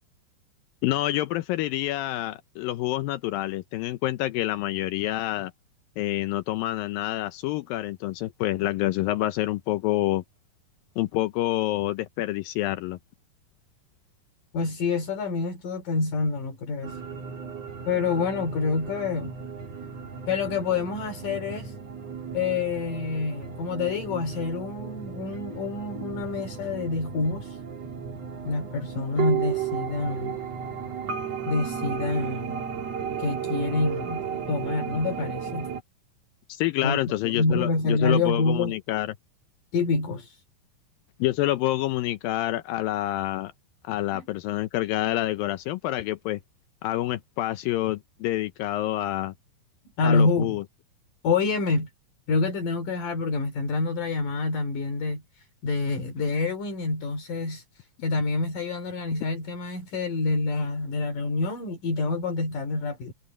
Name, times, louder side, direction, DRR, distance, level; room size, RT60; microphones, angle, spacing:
voice 1, 0.8-5.5 6.0-10.2 11.0-13.0 36.5-39.1 41.2-43.5 43.8-46.4 46.8-49.3 50.0-50.6, left 15 dB, 80° left, 2.5 m, -27 dB
voice 2, 14.5-17.0 17.9-19.3 20.3-21.7 22.3-27.6 28.4-30.3 31.5-32.6 33.2-35.7 36.8-38.7 39.7-40.4 44.1-44.2 50.0-50.6 51.2-51.9 52.3-57.6 58.0-63.1, left 3 dB, 65° left, 4.4 m, -27 dB
sound 1, 16.8-35.8, right 7 dB, 50° right, 3.4 m, -34 dB
omnidirectional pair, 4.1 m